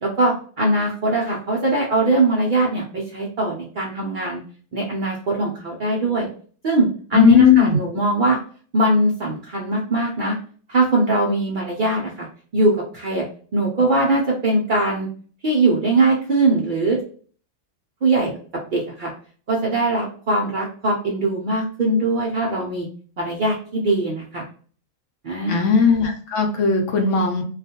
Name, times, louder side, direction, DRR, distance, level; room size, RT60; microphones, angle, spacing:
voice 1, 0.0-4.4 4.7-6.3 6.6-8.4 8.7-10.4 10.7-12.3 12.5-13.2 13.5-15.1 15.4-17.0 18.0-18.3 18.7-19.1 19.5-22.9 23.2-24.4 25.2-25.7, right 2 dB, 80° right, -3 dB, 0.4 m, -21 dB
voice 2, 7.1-7.8 25.5-27.4, left 6 dB, 70° left, 4 dB, 0.8 m, -16 dB
2.4 x 2.2 x 2.7 m, 0.44 s
omnidirectional pair, 1.5 m